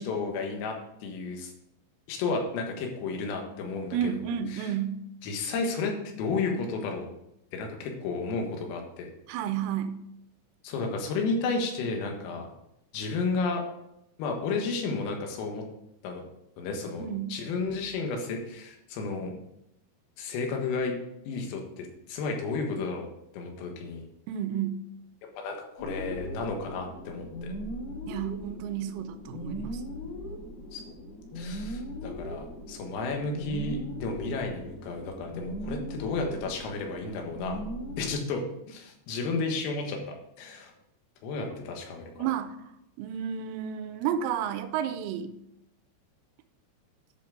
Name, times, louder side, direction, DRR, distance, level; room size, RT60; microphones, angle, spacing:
voice 1, 0.0-1.5 2.1-4.2 4.5-4.7 5.2-7.1 7.5-9.1 10.6-12.5 12.9-13.6 14.2-15.6 16.0-16.2 16.6-19.3 20.2-21.0 21.3-23.1 23.3-24.1 25.4-27.5 30.7-30.8 31.4-37.6 38.0-40.0 40.4-40.7 41.2-42.1, left 4 dB, 85° left, 2 dB, 4.1 m, -32 dB
voice 2, 3.9-5.0 9.3-10.0 17.0-17.4 24.3-24.7 28.1-29.8 41.5-41.6 42.2-42.6 43.0-45.3, right 9 dB, 85° right, 10 dB, 3.1 m, -31 dB
sound 1, 25.8-38.1, equal, 60° left, 3.2 m, -39 dB
10.0 x 5.8 x 5.0 m, 0.81 s
omnidirectional pair, 5.8 m